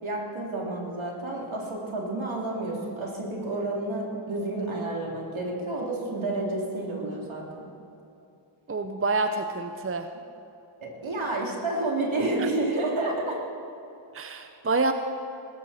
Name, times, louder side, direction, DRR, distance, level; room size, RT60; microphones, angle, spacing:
voice 1, 0.0-7.7 10.8-13.4, right 2 dB, 65° right, -2 dB, 3.1 m, -30 dB
voice 2, 8.7-10.1 12.4-12.5 14.1-14.9, right 3 dB, 25° right, 7 dB, 0.7 m, -27 dB
20.5 x 13.0 x 4.3 m, 2.7 s
cardioid pair, 65°, 50 cm